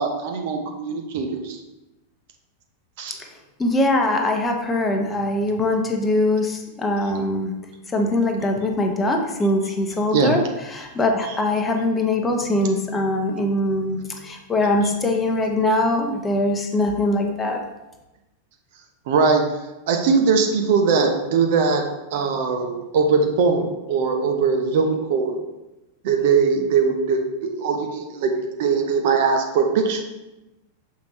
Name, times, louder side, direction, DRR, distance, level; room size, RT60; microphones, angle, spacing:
voice 1, 0.0-1.6 3.0-3.1 10.1-10.4 11.2-11.4 14.8-14.9 19.1-19.5 19.9-21.8 22.1-25.4 26.0-28.3 28.6-30.0, right 5 dB, 50° right, 4 dB, 0.8 m, -21 dB
voice 2, 3.6-7.5 7.9-10.4 10.7-17.6, left 1 dB, 15° left, 3 dB, 0.9 m, -22 dB
6.6 x 5.1 x 3.1 m, 1.0 s
figure-of-eight pair, 90°, 0 cm